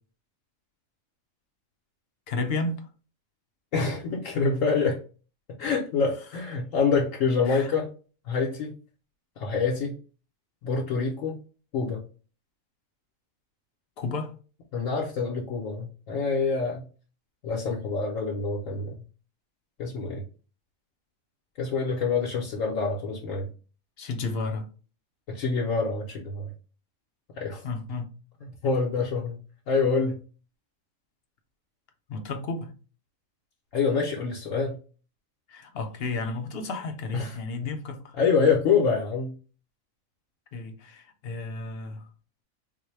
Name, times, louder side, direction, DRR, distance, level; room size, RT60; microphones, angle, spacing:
voice 1, 2.3-2.9 7.5-7.7 14.0-14.3 24.0-24.7 27.6-28.1 32.1-32.7 35.5-38.0 40.5-42.1, left 3 dB, 55° left, 0.7 m, -32 dB
voice 2, 3.7-5.0 5.6-7.9 8.2-8.7 9.4-10.0 10.6-11.3 11.7-12.0 14.7-16.9 17.4-19.0 19.8-20.2 21.6-23.5 25.3-26.5 27.4-27.6 28.4-29.4 29.7-30.2 33.7-34.8 37.1-37.4 38.2-39.4, left 5 dB, 75° left, 1.1 m, -26 dB
3.9 x 2.1 x 3.1 m
omnidirectional pair, 1.4 m